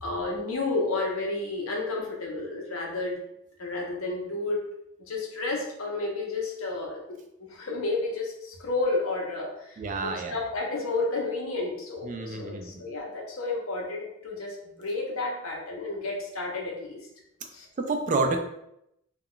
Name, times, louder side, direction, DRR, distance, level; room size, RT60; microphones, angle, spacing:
voice 1, 0.0-3.2 3.6-4.6 5.1-7.2 7.5-17.0 17.5-17.7, left 3 dB, 80° left, -1 dB, 0.7 m, -31 dB
voice 2, 9.8-10.4 12.0-12.8 17.8-18.4, right 3 dB, 35° right, 5 dB, 0.3 m, -29 dB
2.3 x 2.1 x 3.6 m, 0.81 s
head